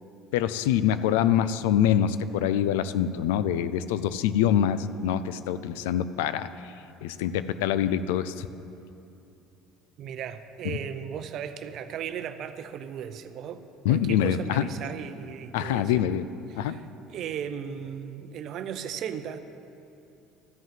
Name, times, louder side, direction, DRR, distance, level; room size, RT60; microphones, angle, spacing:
voice 1, 0.3-6.5 7.0-8.5 10.7-10.8 13.8-14.7 15.5-16.2 16.6-16.8, left 10 dB, 90° left, 14 dB, 0.4 m, -25 dB
voice 2, 10.0-13.6 13.9-16.1 16.5-19.4, right 8 dB, 60° right, 10 dB, 0.6 m, -36 dB
13.0 x 5.5 x 7.5 m, 2.8 s
supercardioid pair, 90°, 0 cm